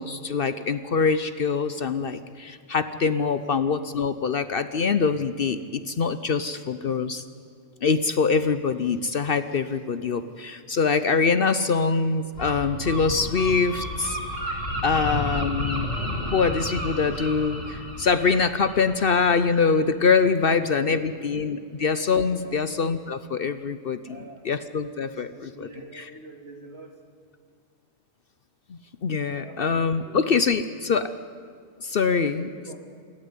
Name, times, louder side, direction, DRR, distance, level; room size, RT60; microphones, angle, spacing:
voice 1, 0.0-7.2 7.8-14.2 14.5-15.9 16.3-24.2 24.4-25.7 25.9-26.0 28.7-31.1 31.8-32.5, left 5 dB, 55° left, 12 dB, 0.9 m, -24 dB
Gull seagull, 12.3-19.9, equal, 85° left, 5.8 m, -32 dB
voice 2, 14.8-15.2 20.4-21.3 22.4-22.7 24.1-24.5 24.8-26.9 29.4-29.7 29.9-30.2 32.2-32.8, right 2 dB, 55° right, 2 dB, 3.0 m, -45 dB
28.0 x 13.0 x 9.7 m, 2.2 s
omnidirectional pair, 1.3 m